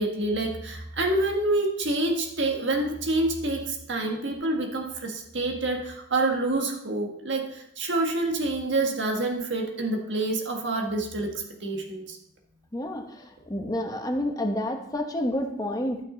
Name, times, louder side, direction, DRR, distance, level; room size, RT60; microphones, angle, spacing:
voice 1, 0.0-11.3 11.6-12.2, right 2 dB, 70° right, 2 dB, 1.6 m, -27 dB
voice 2, 12.7-16.0, left 1 dB, 20° left, 3 dB, 1.0 m, -29 dB
12.0 x 6.0 x 3.9 m, 0.73 s
head